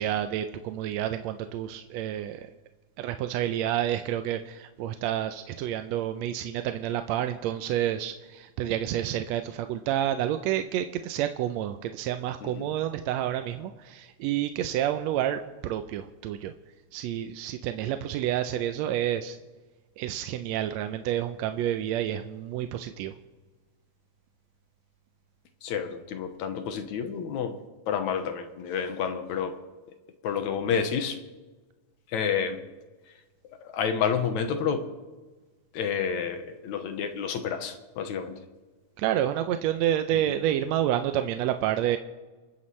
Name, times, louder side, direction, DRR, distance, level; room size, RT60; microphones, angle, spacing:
voice 1, 0.0-2.5 3.0-16.5 16.9-19.4 20.0-23.1 39.0-42.0, right 11 dB, 75° right, 8 dB, 1.7 m, -29 dB
voice 2, 25.6-27.6 27.9-29.6 30.2-31.2 32.1-32.6 33.1-33.2 33.6-34.9 35.7-38.4, left 7 dB, 75° left, 7 dB, 2.3 m, -29 dB
29.0 x 9.8 x 3.2 m, 1.2 s
omnidirectional pair, 3.4 m